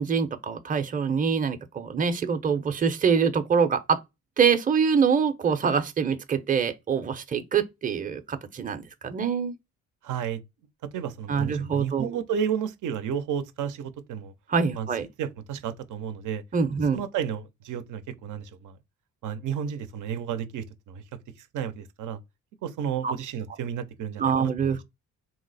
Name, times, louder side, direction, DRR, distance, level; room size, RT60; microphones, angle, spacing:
voice 1, 0.0-4.0 4.4-9.5 11.3-12.2 14.5-15.1 16.5-17.0 23.0-23.1 24.2-24.8, right 6 dB, 25° right, 0.6 m, -25 dB
voice 2, 10.0-10.4 10.9-14.3 14.7-14.9 15.2-16.4 16.9-18.8 19.2-21.0 21.4-22.2 22.6-24.8, right 8 dB, 75° right, 0.6 m, -32 dB
2.8 x 2.0 x 4.0 m
cardioid pair, 80°, 31 cm